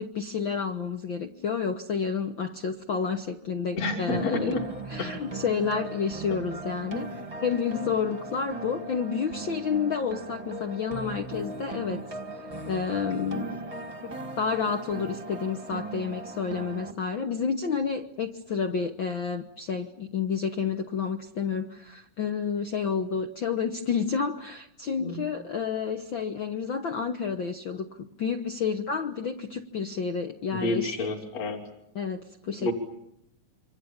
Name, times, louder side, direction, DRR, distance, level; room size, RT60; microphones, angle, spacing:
voice 1, 0.0-7.1 7.4-12.0 12.6-13.6 14.0-30.9 31.9-32.7, left 6 dB, 75° left, 6 dB, 1.1 m, -30 dB
voice 2, 3.7-4.6 5.0-5.1 25.0-25.2 30.5-31.6 32.6-32.7, left 2 dB, 50° left, 2 dB, 4.2 m, -29 dB
sound 1, 4.1-16.9, right 3 dB, 15° right, 1.1 m, -38 dB
28.0 x 25.5 x 7.2 m, 0.78 s
omnidirectional pair, 3.9 m